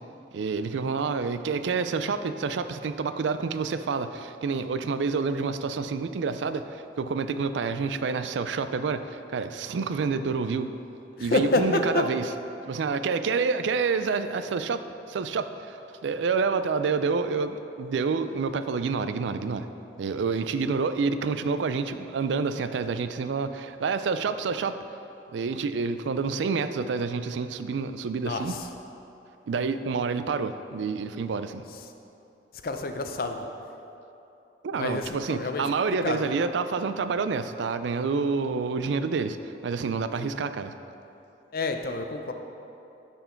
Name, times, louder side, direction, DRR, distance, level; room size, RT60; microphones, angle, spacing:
voice 1, 0.3-10.7 11.2-12.2 12.7-14.8 15.1-15.8 16.0-19.7 20.0-24.8 25.3-28.6 29.5-31.6 34.6-40.7, right 5 dB, 85° right, 11 dB, 0.4 m, -28 dB
voice 2, 11.2-12.1 28.2-28.7 32.6-33.5 34.7-35.6 36.0-36.3 40.2-40.3 41.5-42.3, left 2 dB, 55° left, 6 dB, 0.5 m, -28 dB
12.5 x 4.5 x 4.5 m, 2.9 s
head